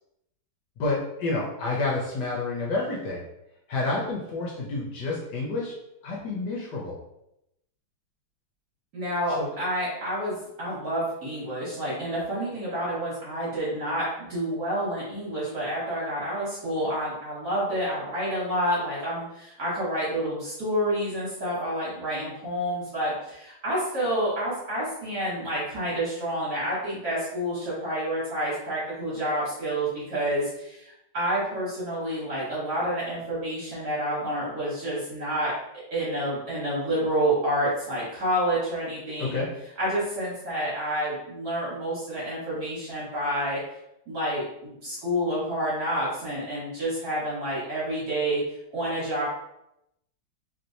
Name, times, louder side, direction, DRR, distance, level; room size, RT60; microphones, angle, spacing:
voice 1, 0.8-3.2 3.7-5.7 6.0-7.0 9.3-9.5 39.2-39.5, left 3 dB, 70° left, -4 dB, 1.2 m, -29 dB
voice 2, 8.9-35.5 35.9-39.4 39.8-43.6 44.1-48.4 48.7-49.3, right 1 dB, 55° right, -8 dB, 1.5 m, -29 dB
3.2 x 2.9 x 2.6 m, 0.83 s
omnidirectional pair, 2.2 m